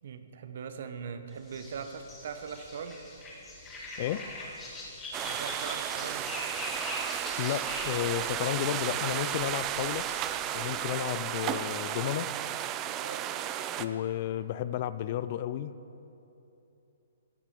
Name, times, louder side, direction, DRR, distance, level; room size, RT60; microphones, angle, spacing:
voice 1, 0.0-3.0 5.2-6.3 10.9-11.2 13.0-13.3, right 6 dB, 60° right, 9 dB, 0.9 m, -41 dB
sound 1, 1.4-11.0, left 2 dB, 15° left, 2.3 m, -43 dB
voice 2, 4.0-4.3 7.4-10.1 10.5-12.3 13.8-15.8, left 11 dB, 45° left, 15 dB, 0.4 m, -32 dB
sound 2, 5.1-13.9, right 11 dB, 25° right, 0.4 m, -34 dB
14.5 x 7.4 x 5.1 m, 2.9 s
hypercardioid pair, 140°, 0 cm